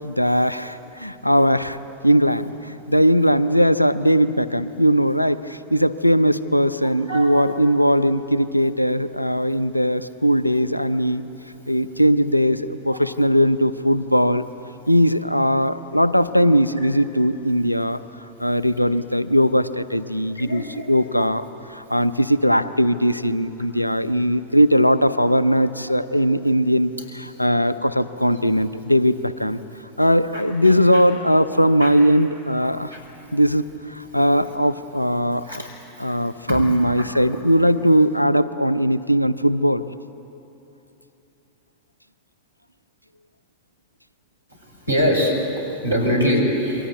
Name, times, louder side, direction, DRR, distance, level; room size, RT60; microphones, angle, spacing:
voice 1, 0.0-1.8 2.0-11.2 11.7-14.4 14.9-18.0 18.4-21.4 21.7-29.6 30.0-32.9 33.3-35.6 36.0-39.8, equal, 90° left, 15 dB, 0.7 m, -19 dB
voice 2, 20.3-20.9 21.2-21.3 23.0-23.1 30.3-31.0 31.8-31.9 32.6-33.0 34.1-34.3 35.4-35.7 36.1-36.2 36.5-36.6 37.0-37.1 44.5-46.9, equal, 90° right, 0 dB, 6.1 m, -25 dB
28.0 x 23.5 x 8.4 m, 3.0 s
figure-of-eight pair, 90°, 0 cm